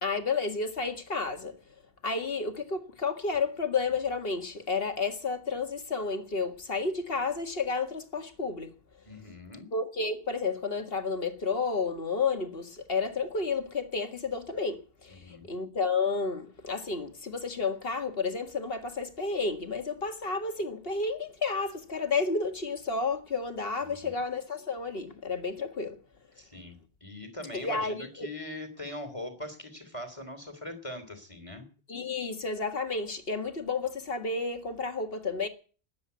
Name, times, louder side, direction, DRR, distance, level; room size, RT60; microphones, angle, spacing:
voice 1, 0.0-1.6 2.0-8.7 9.7-26.0 27.5-28.3 31.9-35.5, left 4 dB, 60° left, 2.1 m, -31 dB
voice 2, 9.0-9.7 15.1-15.5 23.8-24.1 26.3-31.7, left 1 dB, 30° left, 3.2 m, -41 dB
14.0 x 10.5 x 9.5 m
omnidirectional pair, 1.1 m